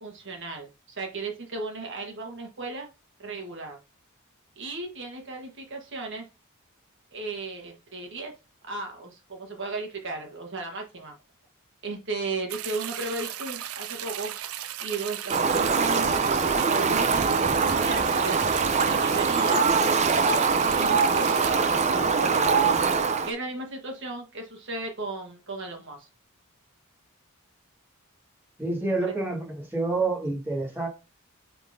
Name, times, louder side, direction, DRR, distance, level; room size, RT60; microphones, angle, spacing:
voice 1, 0.0-2.9 3.2-3.8 4.6-6.2 7.1-8.3 8.6-11.1 11.8-14.3 14.8-18.4 18.8-20.4 20.8-22.7 23.2-26.1 29.0-29.2, right 3 dB, 60° right, 1.5 m, -35 dB
sound 1, 12.5-21.5, right 11 dB, 85° right, 0.6 m, -36 dB
Fowl, 15.3-23.3, right 5 dB, 30° right, 0.6 m, -23 dB
voice 2, 28.6-30.9, right 3 dB, 10° right, 2.1 m, -28 dB
9.8 x 3.9 x 2.7 m
head